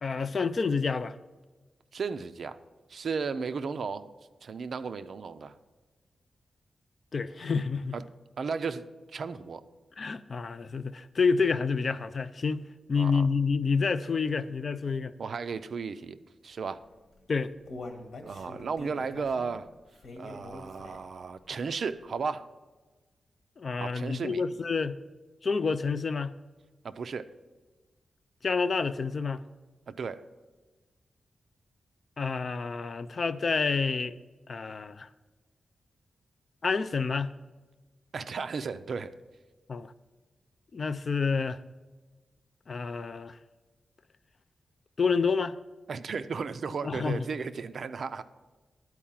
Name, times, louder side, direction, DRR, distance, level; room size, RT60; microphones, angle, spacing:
voice 1, 0.0-1.1 7.1-8.0 10.0-12.6 12.9-15.1 17.3-17.5 23.6-25.0 25.4-26.3 28.4-29.4 32.2-34.2 34.5-35.1 36.6-37.3 39.7-39.9 40.7-41.6 42.7-43.4 45.0-45.6 46.8-47.2, left 5 dB, 40° left, 0.3 m, -28 dB
voice 2, 1.9-2.6 2.9-4.1 4.4-5.5 7.9-8.0 8.4-8.9 9.1-9.6 12.9-13.3 15.2-16.2 16.4-16.8 18.2-19.7 20.2-22.5 23.8-24.4 26.8-27.3 29.9-30.2 38.1-39.1 45.9-48.2, right 5 dB, 55° right, 0.4 m, -34 dB
Human voice, 17.0-21.2 21.6-21.7 22.2-22.3, left 2 dB, 80° left, 1.5 m, -44 dB
11.5 x 4.7 x 7.3 m
wide cardioid pair, 165°, 0 cm